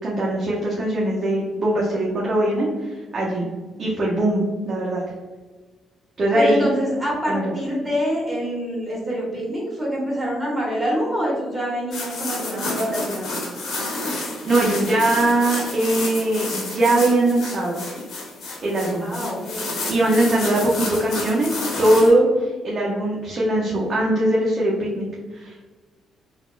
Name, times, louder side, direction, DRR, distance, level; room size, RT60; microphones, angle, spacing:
voice 1, 0.0-3.5 3.8-5.0 6.2-6.7 7.3-7.5 14.4-17.8 18.6-19.0 19.8-25.7, right 1 dB, 40° right, -6 dB, 0.7 m, -21 dB
voice 2, 6.3-13.4 19.0-19.7 20.3-20.6, equal, 10° right, -6 dB, 1.4 m, -26 dB
sound 1, 11.9-22.1, left 2 dB, 75° left, 1.1 m, -30 dB
3.9 x 2.1 x 2.5 m, 1.3 s
cardioid pair, 90°, 0 cm